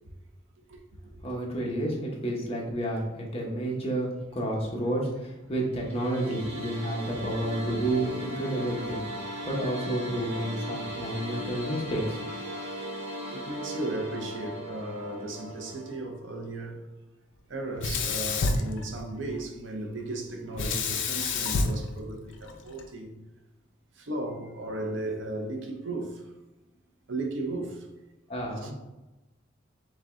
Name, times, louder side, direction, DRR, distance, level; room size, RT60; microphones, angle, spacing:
voice 1, 1.2-12.4 28.3-28.7, right 1 dB, 30° left, 0.9 m, -30 dB
sound 1, 5.7-15.9, equal, 35° right, 0.9 m, -38 dB
voice 2, 13.3-16.9 17.5-23.1 23.9-26.3 27.1-27.9 28.6-28.7, right 2 dB, 70° right, 0.6 m, -35 dB
Sink (filling or washing), 17.8-19.4 20.6-22.8, left 3 dB, 70° left, 0.5 m, -29 dB
5.0 x 2.3 x 3.6 m
head